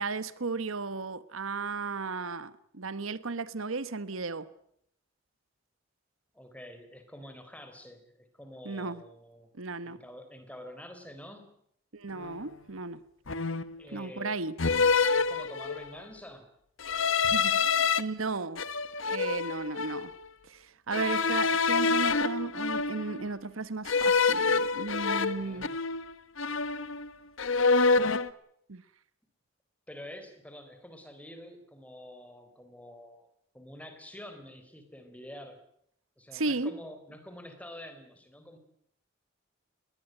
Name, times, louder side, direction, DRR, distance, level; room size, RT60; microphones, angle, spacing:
voice 1, 0.0-4.5 8.6-9.0 9.6-10.0 11.9-13.0 13.9-14.5 17.2-18.6 19.0-20.1 20.4-25.7 28.7-28.8 36.3-36.7, right 3 dB, 80° right, 1.1 m, -35 dB
voice 2, 6.3-9.5 9.8-11.5 13.8-14.4 15.2-16.5 25.1-25.8 29.9-33.3 33.5-35.6 36.2-38.6, left 1 dB, 5° left, 3.8 m, -47 dB
sound 1, 12.2-12.4 13.3-13.8 14.6-16.0 16.8-18.0 18.6-20.1 20.9-23.3 23.9-26.1 26.4-27.1 27.4-28.3, left 4 dB, 70° left, 1.2 m, -27 dB
21.0 x 19.5 x 9.2 m
head